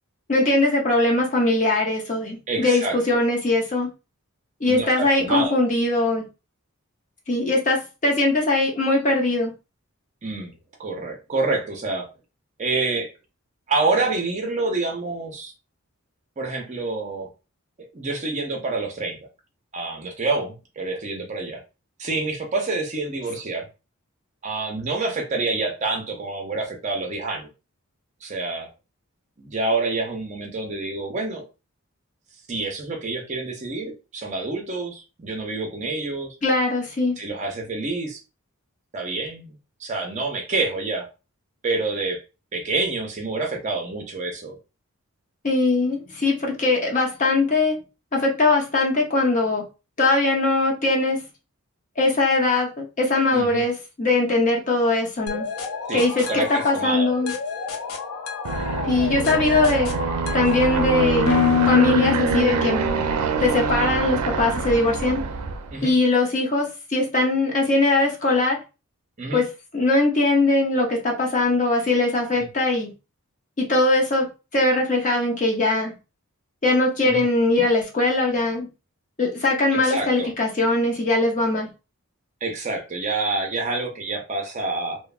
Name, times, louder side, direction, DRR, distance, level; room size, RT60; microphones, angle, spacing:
voice 1, 0.3-3.9 4.6-6.2 7.3-9.5 36.4-37.2 45.4-47.8 48.1-49.6 50.0-51.2 52.0-55.5 55.9-57.3 58.9-59.9 60.3-61.3 61.7-62.8 63.4-65.2 65.8-68.6 69.3-69.4 69.7-72.9 73.6-75.9 76.6-78.7 79.2-81.7, left 2 dB, 35° left, 0.6 m, -21 dB
voice 2, 2.5-3.0 4.7-5.6 10.2-12.1 12.6-13.1 13.7-15.5 16.4-17.3 17.9-19.2 19.7-21.6 22.0-23.7 24.4-27.5 28.2-28.7 29.4-31.4 32.5-36.4 37.2-38.2 38.9-41.1 41.6-42.2 42.5-44.6 53.3-53.6 55.9-57.1 61.9-62.1 65.7-65.9 69.2-69.4 72.4-72.5 77.0-77.2 79.7-80.3 82.4-85.0, right 3 dB, 30° right, 0.5 m, -27 dB
sound 1, 55.3-63.1, left 7 dB, 80° left, 0.5 m, -27 dB
Aircraft, 58.4-65.8, right 4 dB, 85° right, 0.4 m, -25 dB
3.0 x 2.1 x 2.3 m
head